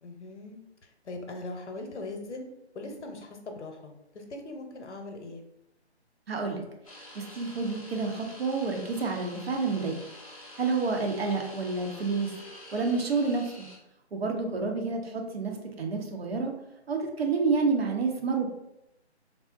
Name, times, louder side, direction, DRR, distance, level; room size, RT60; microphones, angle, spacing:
voice 1, 0.0-2.4 2.7-5.4 14.9-15.2, left 2 dB, 85° left, 3 dB, 0.7 m, -41 dB
voice 2, 6.3-6.6 7.1-10.0 10.6-12.3 12.7-13.7 14.1-16.5 16.9-18.5, right 4 dB, 60° right, 3 dB, 0.7 m, -29 dB
sound 1, 6.9-13.8, left 1 dB, 30° left, 0.5 m, -47 dB
3.6 x 2.0 x 2.4 m, 0.86 s
figure-of-eight pair, 160°, 34 cm